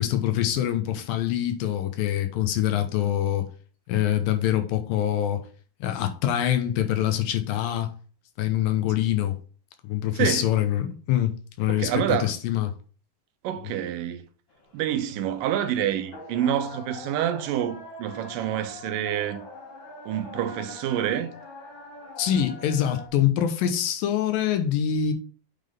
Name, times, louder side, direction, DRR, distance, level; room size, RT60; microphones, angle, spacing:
voice 1, 0.0-3.5 3.9-5.5 5.8-7.9 8.4-9.3 9.8-12.7 22.2-25.1, left 11 dB, 85° left, 2.6 m, -25 dB
voice 2, 10.2-10.5 11.7-12.3 13.4-14.3 14.7-19.4 20.1-21.3, right 10 dB, 80° right, 2.4 m, -27 dB
sound 1, 14.5-23.1, left 2 dB, 55° left, 1.4 m, -44 dB
8.8 x 3.8 x 3.5 m
omnidirectional pair, 4.0 m